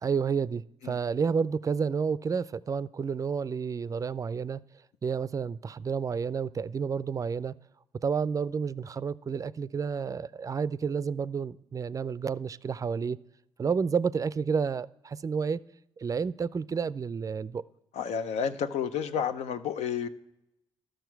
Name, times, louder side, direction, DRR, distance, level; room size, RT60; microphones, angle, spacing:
voice 1, 0.0-4.6 5.0-7.5 8.0-13.2 13.6-15.6 16.0-17.6, right 6 dB, 30° right, 0.4 m, -30 dB
voice 2, 17.9-20.1, left 7 dB, 80° left, 0.6 m, -30 dB
12.5 x 6.3 x 4.5 m
cardioid pair, 70°, 11 cm